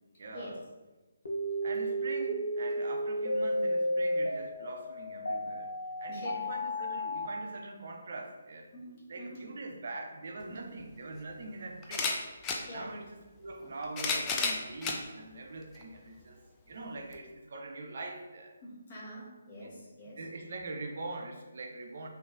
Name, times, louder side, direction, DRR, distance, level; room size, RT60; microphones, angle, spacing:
voice 1, 0.2-0.6 1.6-8.7 9.1-12.2 12.6-18.5 19.6-19.8 20.2-22.1, right 2 dB, 55° right, 2 dB, 0.5 m, -43 dB
sound 1, 1.2-7.3, equal, 65° left, 0.7 m, -33 dB
voice 2, 6.1-6.5 8.7-9.4 10.5-10.7 12.7-12.9 18.6-20.2, left 1 dB, 35° left, -6 dB, 1.1 m, -46 dB
sound 2, 10.4-10.5 11.8-12.6 13.6-15.0 15.7-15.8 17.1-17.2, left 4 dB, 15° left, 0.3 m, -31 dB
3.7 x 2.5 x 2.4 m, 1.2 s
figure-of-eight pair, 145°, 0 cm